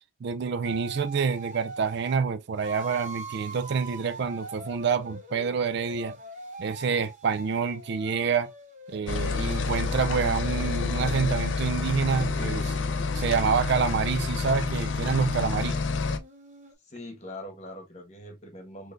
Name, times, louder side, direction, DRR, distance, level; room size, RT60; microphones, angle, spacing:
voice 1, 0.2-6.2 6.6-8.5 8.9-12.8 13.1-15.8, right 6 dB, 55° right, 0.4 m, -27 dB
sound 1, 0.6-2.2 2.6-10.0 10.4-16.7, right 2 dB, 40° right, 1.0 m, -44 dB
sound 2, 9.1-16.2, left 4 dB, 65° left, 0.5 m, -28 dB
voice 2, 16.8-18.9, left 1 dB, 35° left, 1.4 m, -42 dB
4.0 x 3.2 x 2.5 m
head